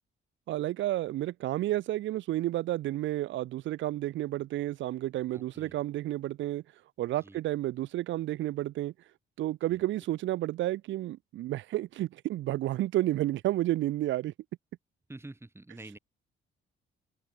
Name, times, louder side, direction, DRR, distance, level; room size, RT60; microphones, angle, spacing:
voice 1, 0.5-6.6 7.0-8.9 9.4-14.3, right 15 dB, 75° right, 0.6 m, -31 dB
voice 2, 5.3-5.8 7.2-7.4 9.7-9.8 15.1-16.0, right 2 dB, 10° right, 2.4 m, -47 dB
cardioid pair, 90°, 20 cm